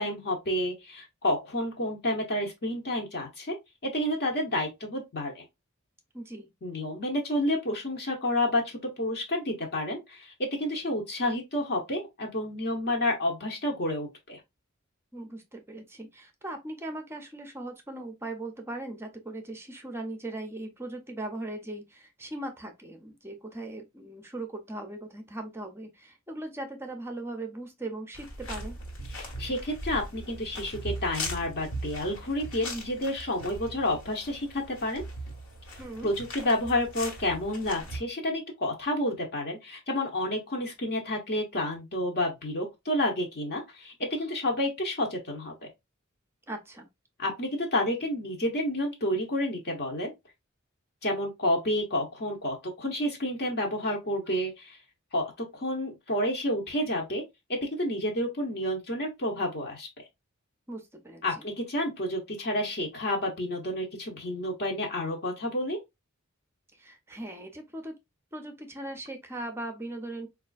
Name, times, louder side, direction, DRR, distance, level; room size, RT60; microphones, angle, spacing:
voice 1, 0.0-3.5 3.8-5.4 6.6-14.4 29.1-35.0 36.0-45.5 47.2-50.1 51.0-54.8 55.1-57.2 57.6-60.1 61.2-65.8, left 1 dB, 50° left, 0.8 m, -30 dB
voice 2, 6.1-6.5 15.1-28.8 35.8-36.1 46.5-46.9 60.7-61.2 66.8-67.9 68.3-70.3, right 2 dB, 10° right, 0.5 m, -39 dB
sound 1, 28.1-38.0, equal, 80° left, 1.3 m, -39 dB
4.2 x 2.4 x 2.3 m
head